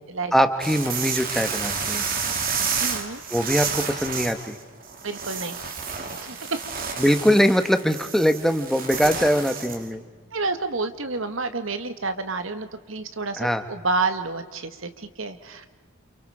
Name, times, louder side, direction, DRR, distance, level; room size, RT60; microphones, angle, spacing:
voice 1, 0.3-2.1 3.3-4.6 7.0-10.0 13.4-13.6, equal, ahead, 7 dB, 1.3 m, -22 dB
sound 1, 0.6-9.8, right 5 dB, 45° right, 2.8 m, -30 dB
voice 2, 2.8-3.2 5.0-5.6 6.1-6.6 10.3-15.7, right 3 dB, 75° right, 9 dB, 1.8 m, -29 dB
30.0 x 28.5 x 5.0 m, 1.4 s
head